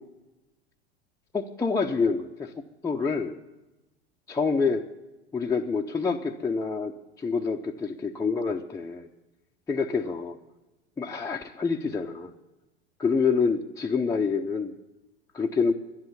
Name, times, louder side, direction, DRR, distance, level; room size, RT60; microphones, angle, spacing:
voice 1, 1.3-3.4 4.3-4.9 5.3-9.1 9.7-10.4 11.0-12.3 13.0-14.7 15.3-15.7, left 5 dB, 10° left, 0 dB, 0.7 m, -27 dB
11.0 x 10.5 x 8.3 m, 1.0 s
figure-of-eight pair, 85°, 34 cm